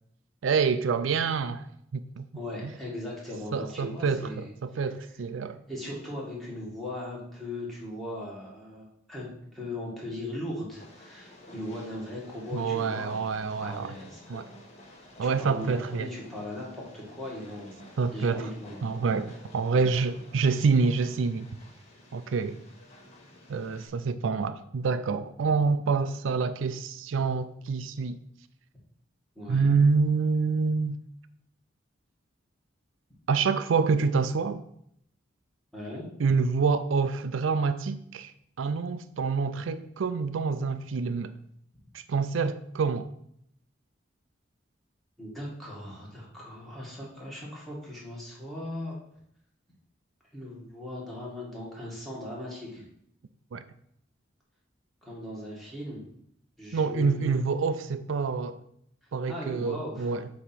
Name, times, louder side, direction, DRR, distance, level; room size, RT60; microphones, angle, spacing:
voice 1, 0.4-1.7 1.9-2.3 2.6-2.7 3.5-5.6 12.5-13.9 14.3-14.4 15.2-16.1 18.0-18.5 18.8-21.5 22.1-22.6 23.5-28.2 29.5-31.0 33.3-34.6 36.2-41.3 41.9-43.1 53.5-53.6 56.7-58.6 59.1-60.3, right 5 dB, 90° right, 0.4 m, -27 dB
voice 2, 2.3-4.5 5.7-14.4 15.2-17.8 18.1-18.9 19.7-19.9 29.4-29.7 35.7-36.1 45.2-49.0 50.3-52.8 55.0-56.1 56.6-57.3 59.3-60.1, left 1 dB, ahead, 2.0 m, -38 dB
Train, 10.7-23.9, left 1 dB, 35° left, 1.4 m, -51 dB
8.1 x 3.0 x 5.8 m
head